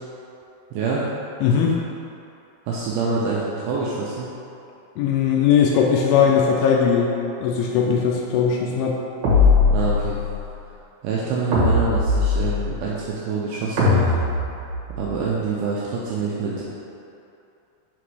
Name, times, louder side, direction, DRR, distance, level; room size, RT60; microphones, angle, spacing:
voice 1, 0.7-1.0 2.7-4.3 9.7-10.2 11.0-14.0 15.0-16.6, right 4 dB, 90° right, -6 dB, 2.2 m, -25 dB
voice 2, 1.4-1.8 5.0-7.1 7.4-9.0, left 7 dB, 90° left, -1 dB, 2.1 m, -19 dB
sound 1, 9.2-10.3 11.5-12.8 13.8-15.0, left 3 dB, 55° right, 2.4 m, -19 dB
6.1 x 3.9 x 4.7 m, 2.7 s
omnidirectional pair, 4.9 m